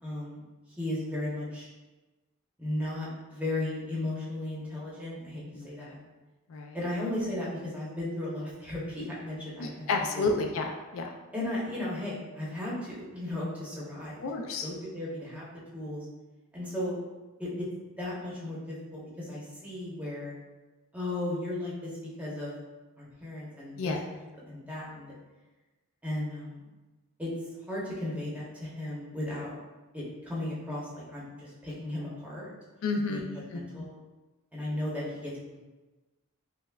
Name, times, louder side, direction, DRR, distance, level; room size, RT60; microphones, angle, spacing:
voice 1, 0.0-0.4 0.8-1.7 2.6-6.0 6.7-9.8 10.1-10.5 11.3-14.2 14.6-15.5 15.7-16.0 16.5-17.0 17.4-17.7 18.0-20.3 20.9-21.9 22.2-22.5 23.0-23.9 24.5-25.1 26.0-26.6 27.2-27.3 27.7-29.5 29.9-32.5 32.9-33.9 34.5-35.6, left 1 dB, 5° right, -6 dB, 0.8 m, -35 dB
voice 2, 5.5-5.9 6.5-6.8 9.6-11.2 14.2-14.7 23.8-24.0 32.8-33.2 33.5-33.8, left 3 dB, 60° left, 3 dB, 0.3 m, -31 dB
5.5 x 2.1 x 2.3 m, 1.2 s
head